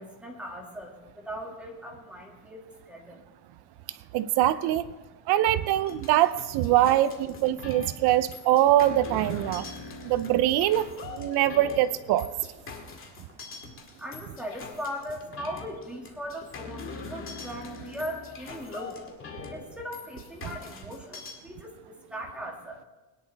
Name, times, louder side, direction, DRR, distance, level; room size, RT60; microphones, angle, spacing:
voice 1, 0.0-2.6 2.9-3.2 14.0-19.0 19.5-22.8, equal, 5° right, -1 dB, 2.3 m, -39 dB
voice 2, 4.1-4.8 5.3-9.7 10.0-12.3, right 13 dB, 70° right, 14 dB, 0.8 m, -23 dB
sound 1, 5.9-21.3, left 4 dB, 30° left, 2.0 m, -43 dB
21.5 x 10.5 x 3.5 m, 1.1 s
cardioid pair, 150°, 41 cm